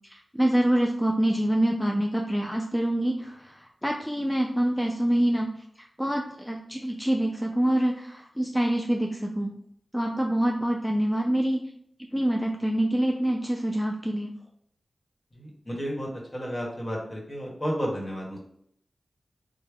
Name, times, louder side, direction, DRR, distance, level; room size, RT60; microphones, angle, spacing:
voice 1, 0.1-9.5 9.9-11.6 12.1-14.3, right 1 dB, 5° left, 1 dB, 0.3 m, -26 dB
voice 2, 15.3-18.4, equal, 35° left, -2 dB, 1.3 m, -32 dB
3.3 x 2.2 x 3.4 m, 0.70 s
cardioid pair, 40°, 0 cm